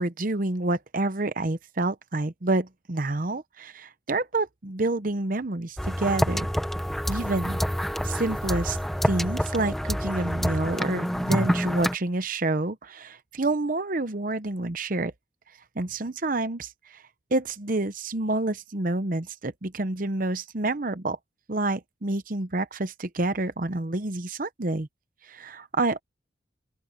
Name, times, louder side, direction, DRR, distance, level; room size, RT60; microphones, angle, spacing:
voice 1, 0.0-6.5 7.1-7.6 8.0-8.8 9.0-15.1 15.8-17.0 17.3-21.2 21.5-24.9 25.2-26.0, right 2 dB, 45° right, 0.9 m, -28 dB
sound 1, 5.8-11.9, equal, ahead, 1.0 m, -27 dB
open air
head